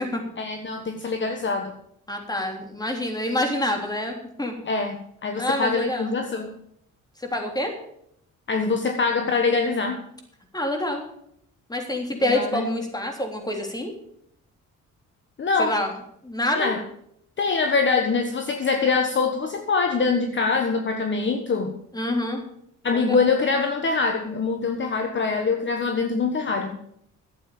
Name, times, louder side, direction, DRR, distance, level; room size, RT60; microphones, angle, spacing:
voice 1, 0.4-1.7 4.7-6.6 8.5-10.0 12.3-12.7 15.4-15.7 16.5-16.8 17.4-21.7 22.8-26.8, left 4 dB, 40° left, 5 dB, 1.4 m, -24 dB
voice 2, 2.1-4.5 5.4-6.1 7.2-7.7 10.5-11.0 11.7-13.9 15.6-15.9 16.2-16.7 21.9-22.4 22.9-23.2, left 1 dB, 15° left, 3 dB, 3.4 m, -27 dB
12.0 x 8.5 x 7.1 m, 0.71 s
cardioid pair, 90°, 30 cm